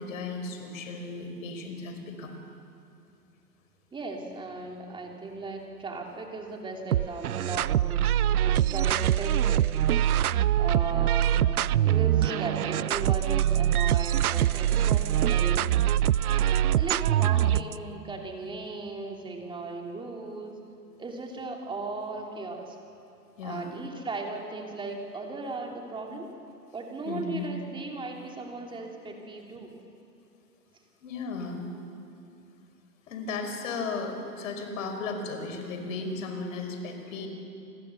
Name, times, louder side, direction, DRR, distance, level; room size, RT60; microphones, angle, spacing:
voice 1, 0.0-2.3 11.3-11.6 17.4-17.6 23.4-23.7 27.1-27.5 31.0-31.6 33.1-37.3, left 4 dB, 50° left, 5 dB, 5.2 m, -35 dB
voice 2, 3.9-8.0 8.4-10.1 10.6-11.4 11.8-15.6 16.5-20.5 21.0-22.8 23.4-26.3 26.7-29.7, right 3 dB, 10° right, 1 dB, 3.0 m, -37 dB
sound 1, 6.9-17.7, right 11 dB, 65° right, 0.6 m, -24 dB
29.0 x 21.5 x 7.0 m, 2.7 s
hypercardioid pair, 130°, 49 cm